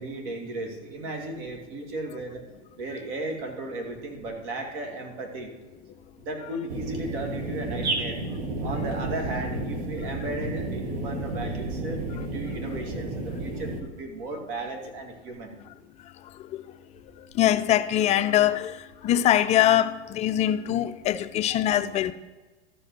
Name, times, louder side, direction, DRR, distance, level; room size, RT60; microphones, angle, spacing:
voice 1, 0.0-2.4 2.8-5.5 6.2-8.2 8.6-15.6, right 2 dB, 55° right, 2.7 m, -35 dB
sound 1, 6.7-13.8, right 2 dB, 80° right, 2.0 m, -31 dB
voice 2, 17.4-18.8 19.0-22.1, left 12 dB, 20° left, 0.3 m, -22 dB
13.0 x 5.2 x 6.0 m
hypercardioid pair, 120°, 32 cm